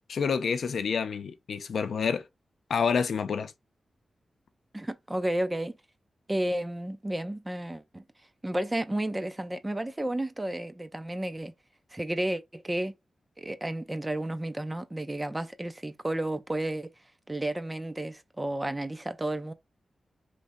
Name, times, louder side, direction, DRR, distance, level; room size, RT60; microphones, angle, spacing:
voice 1, 0.1-2.2 2.7-3.5, left 6 dB, 75° left, 0.5 m, -28 dB
voice 2, 4.7-5.7 6.3-8.0 8.4-11.5 11.9-12.9 13.4-16.9 17.3-19.5, right 1 dB, 15° right, 0.5 m, -32 dB
5.0 x 3.2 x 2.6 m
wide cardioid pair, 125°, 0 cm